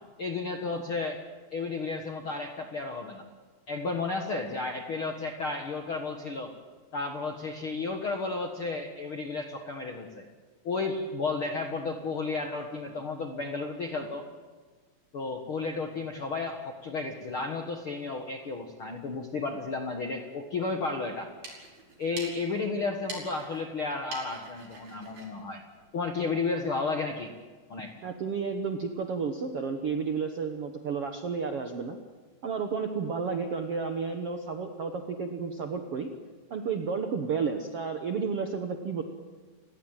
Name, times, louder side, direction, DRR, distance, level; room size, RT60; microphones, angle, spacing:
voice 1, 0.2-1.2 1.5-3.2 3.7-6.5 6.9-10.2 10.6-14.2 15.1-21.3 22.0-25.6 25.9-27.3 27.7-27.9, left 3 dB, 60° left, 4 dB, 1.3 m, -33 dB
sound 1, 21.2-26.5, right 3 dB, 65° right, 7.2 m, -46 dB
voice 2, 28.0-32.0 32.4-36.1 36.5-39.0, right 5 dB, 90° right, 6 dB, 1.2 m, -32 dB
30.0 x 17.5 x 9.0 m, 1.5 s
omnidirectional pair, 4.8 m